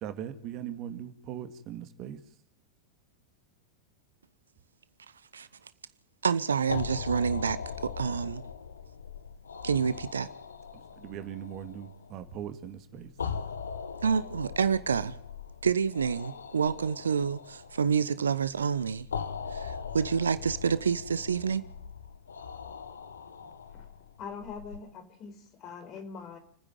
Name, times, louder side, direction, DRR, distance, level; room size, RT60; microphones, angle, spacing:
voice 1, 0.0-2.2 10.7-13.1, right 10 dB, 35° right, 2.2 m, -40 dB
voice 2, 6.2-8.4 9.6-10.3 14.0-15.1 15.6-19.1 19.5-21.6, right 6 dB, 70° right, 0.9 m, -28 dB
sound 1, 6.7-24.8, left 6 dB, 70° left, 1.4 m, -40 dB
voice 3, 24.2-26.4, left 5 dB, 35° left, 4.6 m, -43 dB
29.5 x 10.0 x 9.1 m
figure-of-eight pair, 90°, 0 cm